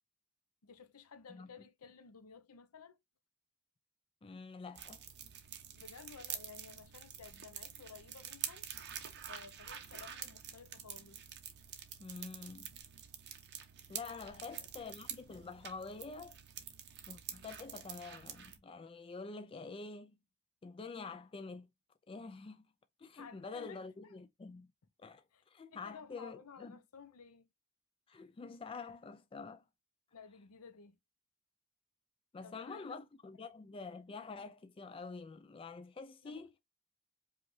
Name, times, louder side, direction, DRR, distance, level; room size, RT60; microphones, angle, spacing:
voice 1, 0.6-3.0 5.8-8.7 9.3-11.2 14.4-14.7 23.1-24.2 25.3-25.4 25.7-27.5 30.1-31.0 32.4-33.0 33.4-33.5 36.2-36.6, left 5 dB, 80° left, 0.7 m, -55 dB
voice 2, 4.2-5.0 12.0-12.7 13.9-16.4 17.1-20.2 20.6-21.7 22.1-22.6 23.0-24.7 25.0-26.8 28.1-29.6 32.3-36.5, left 4 dB, 25° left, 0.3 m, -47 dB
sound 1, 4.7-18.6, right 9 dB, 50° right, 0.8 m, -47 dB
5.1 x 2.4 x 3.1 m
head